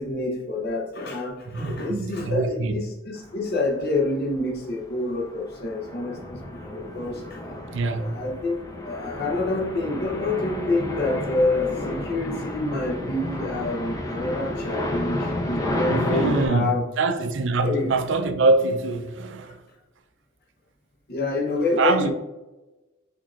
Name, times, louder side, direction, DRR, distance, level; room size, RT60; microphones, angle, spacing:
voice 1, 0.0-7.4 7.9-16.8 17.6-17.9 21.1-22.1, left 2 dB, 50° left, 0.7 m, -27 dB
voice 2, 1.5-2.7 7.7-8.1 15.9-19.6 21.8-22.1, right 3 dB, 65° right, 0.5 m, -24 dB
sound 1, 3.5-3.7 4.1-16.5, left 1 dB, 15° left, 0.5 m, -31 dB
5.9 x 3.6 x 2.4 m
head